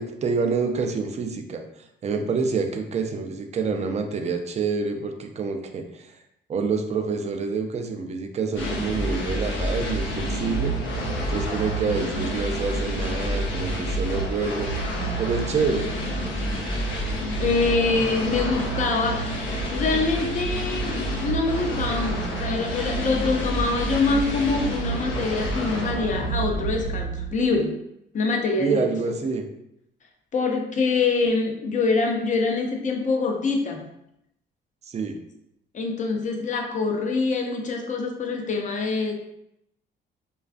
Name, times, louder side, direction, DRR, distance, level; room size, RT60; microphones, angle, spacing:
voice 1, 0.0-6.2 6.5-10.7 11.3-14.7 15.2-15.9 28.6-29.5 34.8-35.2, right 4 dB, 35° right, 5 dB, 0.3 m, -27 dB
sound 1, 8.5-27.6, right 1 dB, 80° left, 0.7 m, -28 dB
voice 2, 17.4-20.9 21.2-27.8 28.1-28.9 30.3-33.8 35.7-39.1, left 3 dB, 40° left, 2 dB, 0.5 m, -25 dB
2.3 x 2.3 x 2.4 m, 0.80 s
cardioid pair, 90°, 20 cm